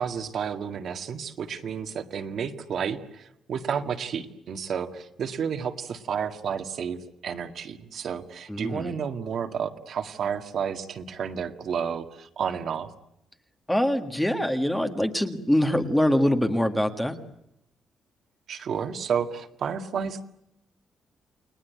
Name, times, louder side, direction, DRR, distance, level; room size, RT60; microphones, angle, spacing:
voice 1, 0.0-12.9 18.5-20.2, right 7 dB, 50° right, 6 dB, 1.8 m, -31 dB
voice 2, 8.5-8.9 13.7-17.1, left 1 dB, 5° left, 6 dB, 1.7 m, -24 dB
30.0 x 20.5 x 9.4 m, 0.83 s
cardioid pair, 175°, 0 cm